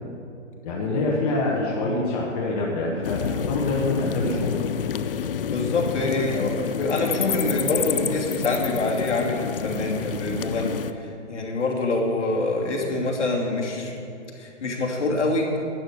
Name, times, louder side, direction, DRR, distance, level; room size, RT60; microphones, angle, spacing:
voice 1, 0.6-4.6, left 2 dB, 30° left, -3 dB, 1.4 m, -25 dB
sound 1, 3.0-10.9, left 8 dB, 45° left, 0.4 m, -29 dB
voice 2, 5.5-14.0 14.4-15.6, left 2 dB, 65° left, -1 dB, 2.8 m, -25 dB
11.5 x 8.8 x 6.7 m, 2.7 s
hypercardioid pair, 160°, 38 cm